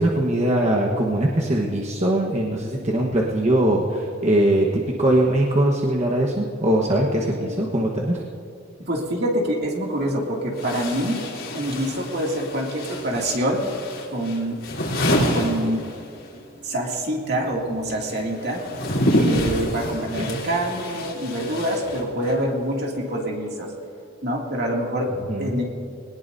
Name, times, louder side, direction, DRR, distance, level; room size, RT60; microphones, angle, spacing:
voice 1, 0.0-8.2 20.2-20.4 25.3-25.6, right 1 dB, 35° right, -2 dB, 1.3 m, -21 dB
voice 2, 8.9-11.2 11.5-13.6 14.1-14.6 15.1-15.9 16.6-18.6 19.2-23.7 24.2-25.1 25.4-25.6, right 1 dB, 60° right, -1 dB, 2.5 m, -25 dB
sound 1, 9.6-9.7 10.5-16.4 16.6-22.5, equal, 85° left, 3.7 m, -27 dB
21.5 x 19.0 x 2.7 m, 2.5 s
head